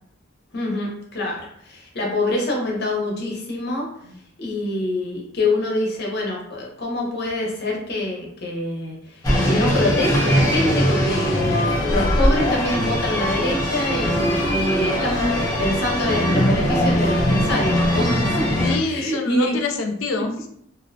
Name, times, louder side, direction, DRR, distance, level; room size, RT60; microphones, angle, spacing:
voice 1, 0.5-3.9 4.4-18.4 18.9-19.6, left 1 dB, 55° left, -1 dB, 0.7 m, -25 dB
sound 1, 9.2-18.8, equal, 20° left, 0.7 m, -21 dB
voice 2, 18.6-20.5, left 3 dB, 80° left, 4 dB, 0.4 m, -26 dB
2.5 x 2.1 x 2.5 m, 0.69 s
head